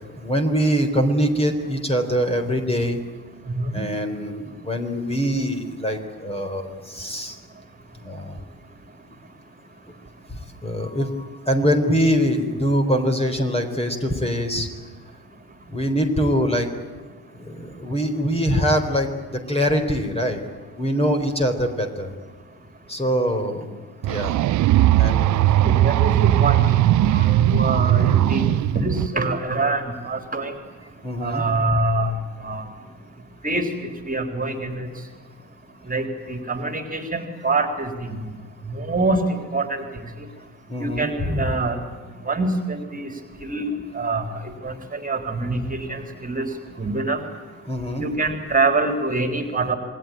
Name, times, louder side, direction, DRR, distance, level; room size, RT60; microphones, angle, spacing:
voice 1, 0.1-3.0 3.7-7.4 8.0-8.4 10.3-14.7 15.7-16.8 17.3-20.4 20.8-22.1 22.9-23.7 24.0-24.5 25.0-25.6 27.0-27.1 27.4-28.3 31.0-31.4 40.7-41.4 47.7-48.0, equal, 15° left, 5 dB, 4.2 m, -24 dB
sound 1, 24.0-29.1, right 14 dB, 40° right, 0.7 m, -18 dB
voice 2, 25.6-26.7 27.1-30.5 31.2-32.1 32.4-32.6 33.4-33.7 34.1-34.9 35.9-38.2 38.8-39.8 40.8-41.8 42.3-43.1 43.4-44.2 44.6-46.5 46.8-47.2 48.0-49.8, right 3 dB, 20° right, 6 dB, 3.7 m, -25 dB
28.0 x 21.0 x 9.0 m, 1.4 s
figure-of-eight pair, 55°, 44 cm